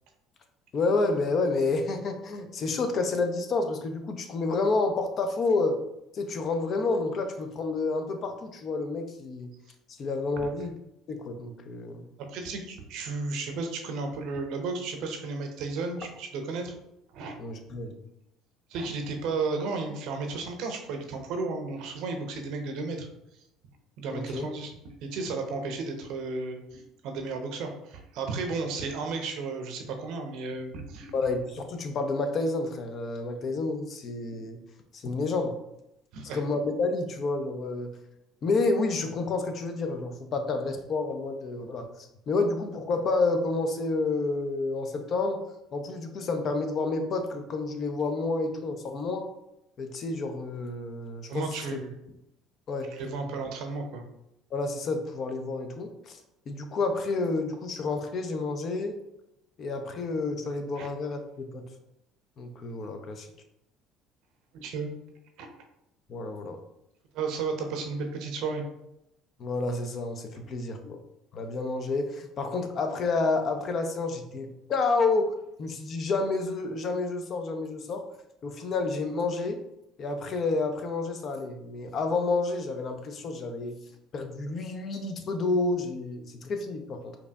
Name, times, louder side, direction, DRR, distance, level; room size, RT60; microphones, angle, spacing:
voice 1, 0.7-5.8 6.1-9.5 10.0-10.7 11.1-12.1 17.4-17.9 24.1-24.5 31.1-34.6 34.9-35.6 36.3-37.9 38.4-45.4 45.7-49.3 49.8-51.5 52.7-52.9 54.5-56.2 56.5-58.9 59.6-61.6 62.4-63.3 66.1-66.6 69.4-71.0 71.3-75.3 75.6-78.0 78.4-79.6 80.0-83.8 84.1-87.2, left 3 dB, 50° left, 6 dB, 0.5 m, -29 dB
voice 2, 12.2-16.7 17.1-17.4 18.7-23.1 24.0-24.7 25.0-31.1 36.1-36.4 51.3-51.9 52.9-54.0 60.7-60.9 64.5-64.9 65.4-65.5 67.1-68.6, right 4 dB, 65° right, 4 dB, 0.6 m, -33 dB
4.7 x 2.7 x 2.3 m, 0.85 s
hypercardioid pair, 60°, 0 cm